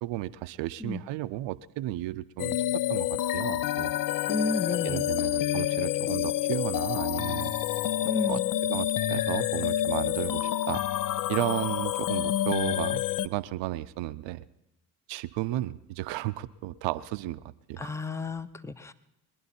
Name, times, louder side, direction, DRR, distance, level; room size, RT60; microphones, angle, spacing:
voice 1, 0.0-2.6 2.9-3.9 4.8-7.5 8.3-8.4 8.7-10.8 11.3-14.4 15.1-17.4 17.7-17.9, right 16 dB, 65° right, 15 dB, 0.6 m, -33 dB
sound 1, 2.4-13.3, left 13 dB, 45° left, 0.5 m, -28 dB
voice 2, 4.3-5.1 8.0-8.5 17.8-18.9, left 3 dB, 5° left, 13 dB, 0.8 m, -32 dB
22.0 x 11.0 x 4.3 m, 0.88 s
hypercardioid pair, 40°, 48 cm